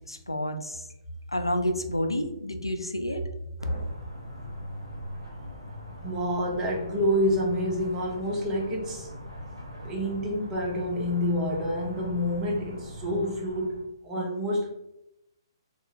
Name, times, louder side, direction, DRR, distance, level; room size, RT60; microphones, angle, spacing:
voice 1, 0.1-0.8 1.3-3.2, equal, 85° left, 6 dB, 0.4 m, -29 dB
sound 1, 3.6-13.8, equal, 85° right, 0.7 m, -41 dB
voice 2, 6.0-9.1 9.8-13.8 14.0-14.7, equal, 20° right, -2 dB, 0.7 m, -28 dB
3.2 x 2.2 x 2.9 m, 0.86 s
figure-of-eight pair, 125°, 2 cm